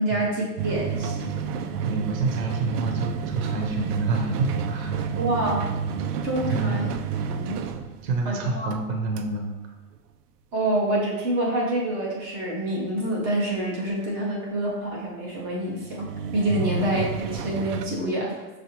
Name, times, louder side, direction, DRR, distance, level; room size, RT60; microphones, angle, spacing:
voice 1, 0.0-1.4 5.2-5.7 6.2-6.9 7.3-7.7 8.2-8.7 10.5-18.4, right 1 dB, 20° right, -3 dB, 0.4 m, -27 dB
sound 1, 0.6-8.8 9.2-9.3 10.0-10.1 15.7-17.8, right 6 dB, 90° right, 0.5 m, -30 dB
voice 2, 1.8-5.0 6.5-6.9 8.0-9.5 16.6-17.0, right 3 dB, 60° right, 2 dB, 0.8 m, -28 dB
6.1 x 2.4 x 2.9 m, 1.1 s
supercardioid pair, 155°, 45 cm